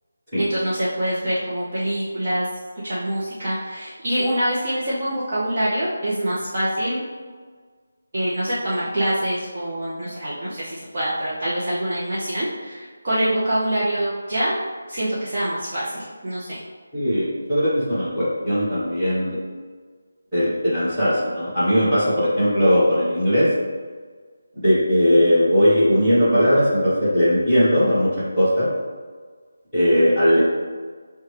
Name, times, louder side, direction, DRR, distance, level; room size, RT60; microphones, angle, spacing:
voice 1, 0.4-2.5 2.8-7.0 8.1-14.5 14.9-16.6, right 1 dB, 30° right, -9 dB, 0.6 m, -25 dB
voice 2, 16.9-19.4 20.3-23.5 24.5-28.1 28.4-28.7 29.7-30.4, equal, 5° right, -16 dB, 1.3 m, -19 dB
6.2 x 2.2 x 3.2 m, 1.6 s
figure-of-eight pair, 180°, 0 cm